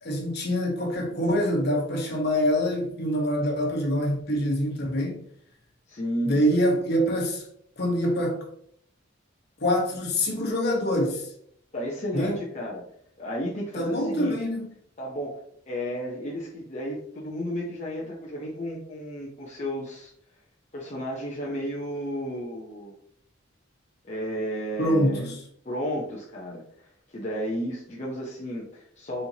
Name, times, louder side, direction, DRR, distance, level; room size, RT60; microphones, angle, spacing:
voice 1, 0.0-5.2 6.2-7.4 7.8-8.5 9.6-11.3 12.1-12.4 13.8-14.7 24.8-25.4, equal, 55° left, 1.2 m, -25 dB
voice 2, 5.9-6.4 11.7-12.8 13.2-14.5 15.0-15.4 15.7-20.1 20.7-23.0 24.0-25.2 25.6-29.3, equal, 35° left, 0.7 m, -33 dB
4.3 x 4.2 x 2.8 m
head